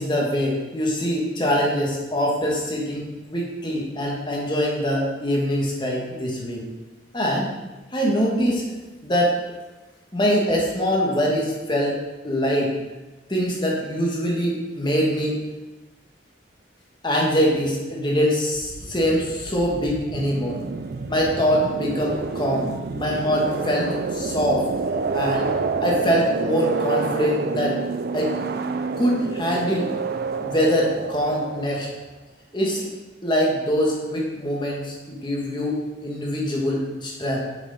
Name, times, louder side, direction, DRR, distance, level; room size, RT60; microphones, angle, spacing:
voice 1, 0.0-6.6 7.1-7.5 7.9-8.7 9.0-9.3 10.1-11.9 12.2-12.7 13.3-15.4 17.0-20.6 21.1-22.7 22.9-24.7 25.1-25.5 25.8-27.8 28.1-28.3 29.0-29.9 30.4-31.9 32.5-32.9 33.2-37.4, equal, 25° left, -2 dB, 1.5 m, -23 dB
sound 1, 18.5-31.9, right 4 dB, 50° right, 0.4 m, -28 dB
7.4 x 6.0 x 4.1 m, 1.1 s
head